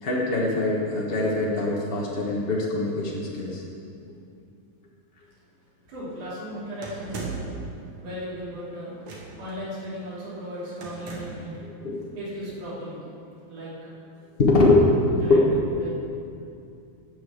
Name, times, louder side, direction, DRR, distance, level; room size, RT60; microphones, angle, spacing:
voice 1, 0.0-3.6 11.6-12.1 14.4-14.8 15.3-15.5, left 2 dB, 40° left, -5 dB, 0.7 m, -23 dB
voice 2, 5.8-7.4 8.0-9.0 9.4-11.5 12.1-13.0 13.5-13.7 14.6-14.7 15.2-15.4 15.8-15.9, equal, 80° right, -9 dB, 4.8 m, -36 dB
sound 1, 6.8-7.6 9.0-9.5 10.8-11.5, right 4 dB, 65° right, 2.7 m, -36 dB
12.0 x 6.8 x 8.3 m, 2.6 s
omnidirectional pair, 3.4 m